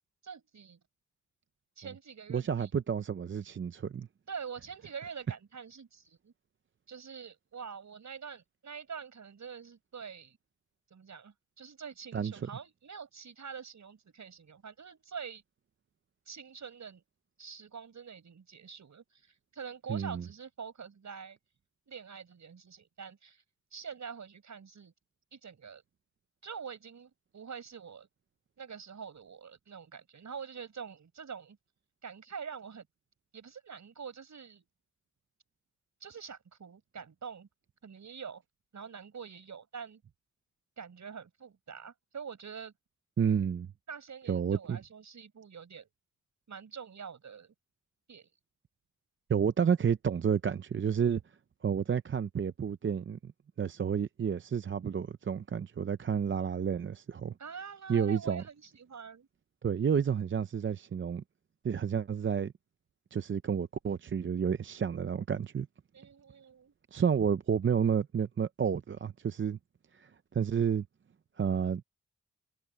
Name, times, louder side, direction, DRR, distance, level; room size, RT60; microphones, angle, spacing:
voice 1, 0.2-0.8 1.8-2.7 4.3-6.3 6.9-10.4 10.9-15.4 16.3-17.0 17.4-21.4 21.9-23.4 23.7-24.9 25.3-25.8 26.4-28.1 28.6-31.6 32.0-32.9 33.3-34.7 36.0-37.5 37.8-38.4 38.7-40.0 40.8-42.7 43.9-45.9 46.5-47.5 48.1-48.3 57.4-59.3 65.9-66.7, right 6 dB, 70° right, 5.7 m, -45 dB
voice 2, 2.3-4.1 12.1-12.5 19.9-20.2 43.2-43.7 44.3-44.8 49.3-51.2 51.6-53.3 53.6-57.3 57.9-58.4 59.6-61.2 61.6-62.5 63.1-65.7 66.9-69.6 69.9-70.8 71.4-71.8, right 7 dB, 40° right, 0.5 m, -30 dB
wide cardioid pair, 155°, 30 cm